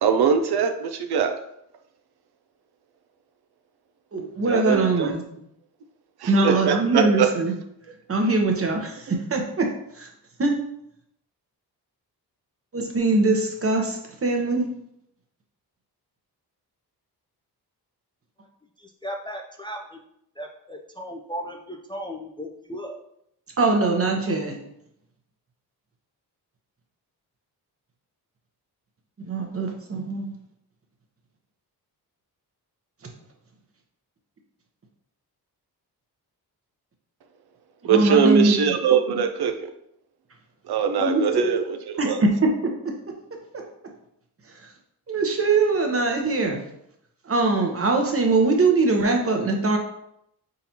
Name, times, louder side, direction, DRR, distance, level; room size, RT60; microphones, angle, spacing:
voice 1, 0.0-1.3 4.5-5.1 6.2-7.3 37.8-39.7 40.7-42.2, right 7 dB, 75° right, 6 dB, 0.5 m, -22 dB
voice 2, 4.1-5.2 6.3-7.5 8.1-9.7 9.9-10.1 10.4-10.6 12.7-14.7 23.6-24.6 29.2-30.3 37.8-38.6 41.0-41.6 42.0-42.5 45.1-46.6 47.3-49.8, right 3 dB, 35° right, 2 dB, 0.9 m, -22 dB
voice 3, 18.8-20.0 20.4-23.0, equal, 15° left, 1 dB, 0.4 m, -36 dB
4.1 x 3.8 x 2.9 m, 0.76 s
cardioid pair, 85°, 39 cm